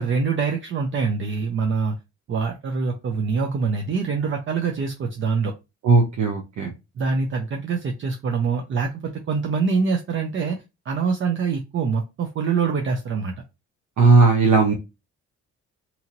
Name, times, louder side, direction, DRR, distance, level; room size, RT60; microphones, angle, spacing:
voice 1, 0.0-1.9 2.3-5.5 7.0-10.6 10.9-13.3, right 5 dB, 40° right, 3 dB, 0.5 m, -24 dB
voice 2, 5.8-6.7 14.0-14.7, right 3 dB, 70° right, 1 dB, 0.8 m, -16 dB
2.8 x 2.7 x 2.5 m, 0.25 s
cardioid pair, 90°, 30 cm